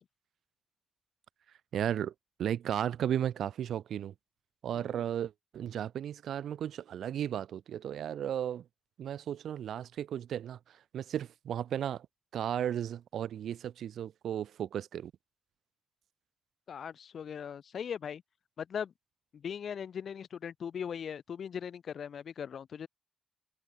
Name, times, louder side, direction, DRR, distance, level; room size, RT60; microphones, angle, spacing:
voice 1, 1.7-2.1 2.4-4.1 4.6-8.6 9.0-12.1 12.3-15.1, right 10 dB, 85° right, 3.4 m, -35 dB
voice 2, 16.7-18.2 18.6-18.9 19.3-22.9, left 7 dB, 55° left, 5.4 m, -39 dB
wide cardioid pair, 180°, 0 cm